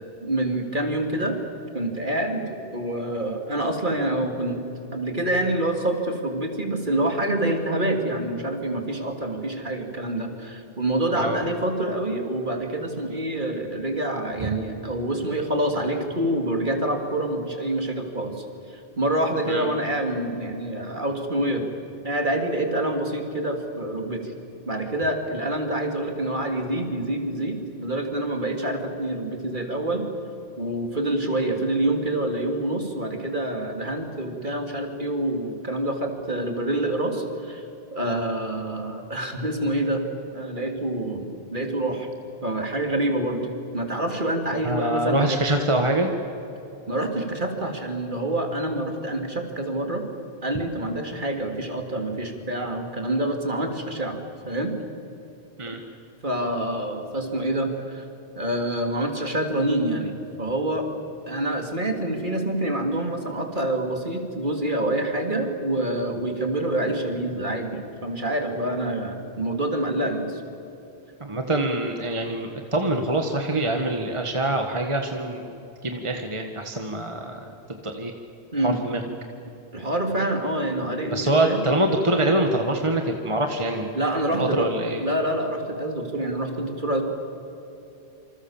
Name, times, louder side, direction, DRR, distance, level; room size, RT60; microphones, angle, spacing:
voice 1, 0.0-1.4 1.7-4.6 4.9-21.7 22.0-24.3 24.7-30.1 30.6-37.6 37.9-40.0 40.3-42.1 42.4-43.5 43.7-45.4 46.9-50.0 50.4-54.7 56.2-58.0 58.4-60.9 61.3-70.4 78.5-78.8 79.7-81.6 83.9-84.7 85.0-87.0, right 1 dB, 50° right, 4 dB, 3.0 m, -26 dB
voice 2, 44.5-46.1 55.6-55.8 71.2-75.5 75.8-77.4 77.8-78.1 78.6-79.0 81.1-83.9 84.3-85.0, right 1 dB, 30° right, 4 dB, 1.7 m, -25 dB
27.5 x 26.5 x 7.3 m, 3.0 s
omnidirectional pair, 1.1 m